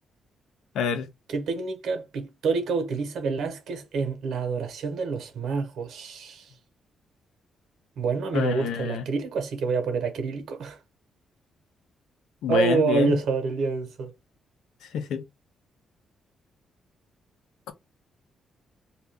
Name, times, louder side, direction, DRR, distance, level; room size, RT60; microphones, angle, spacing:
voice 1, 0.7-1.1 8.3-9.1 12.4-13.2 14.9-15.2, left 7 dB, 85° left, 0.7 m, -27 dB
voice 2, 1.3-6.5 8.0-10.8 12.5-14.1, right 4 dB, 70° right, 1.0 m, -27 dB
2.8 x 2.5 x 3.4 m
cardioid pair, 130°, 0 cm